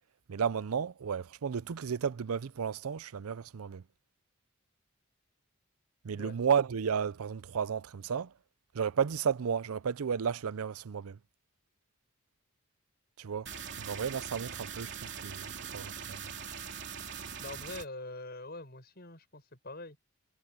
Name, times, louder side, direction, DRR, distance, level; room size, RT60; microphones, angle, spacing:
voice 1, 0.3-3.8 6.0-8.3 8.7-11.2 13.2-13.5 13.8-16.3, right 7 dB, 80° right, 0.5 m, -33 dB
sound 1, 13.5-17.9, right 7 dB, 55° right, 3.3 m, -42 dB
voice 2, 17.4-20.0, left 2 dB, 45° left, 7.3 m, -44 dB
head